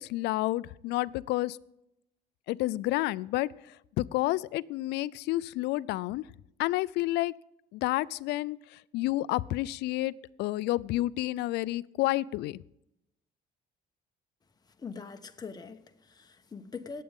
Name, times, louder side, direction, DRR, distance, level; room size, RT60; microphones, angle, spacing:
voice 1, 0.0-1.6 2.5-6.3 6.6-7.3 7.7-10.1 10.4-12.6, left 17 dB, 80° left, 0.4 m, -30 dB
voice 2, 14.8-17.0, left 5 dB, 25° left, 1.1 m, -42 dB
21.0 x 8.5 x 3.6 m
cardioid pair, 110°, 17 cm